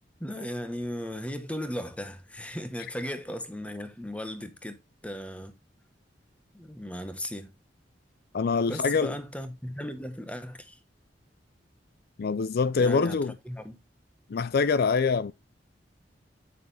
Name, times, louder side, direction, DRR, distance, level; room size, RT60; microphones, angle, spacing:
voice 1, 0.2-4.8 5.0-5.6 6.5-7.5 8.7-10.8 12.8-13.2 13.4-13.8, equal, 5° left, 1.2 m, -36 dB
voice 2, 8.3-9.2 12.2-13.3 14.3-15.3, left 5 dB, 55° left, 0.4 m, -25 dB
9.3 x 6.6 x 3.3 m
head